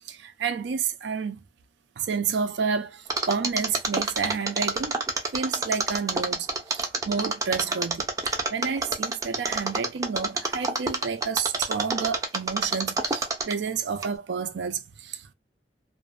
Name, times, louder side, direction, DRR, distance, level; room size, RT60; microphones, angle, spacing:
voice 1, 0.1-1.4 2.0-5.0 5.3-8.1 8.5-15.3, right 6 dB, 85° right, 0.4 m, -30 dB
Mechanisms, 3.1-13.7 14.0-14.1, right 3 dB, 20° right, 0.5 m, -27 dB
2.5 x 2.1 x 2.4 m
head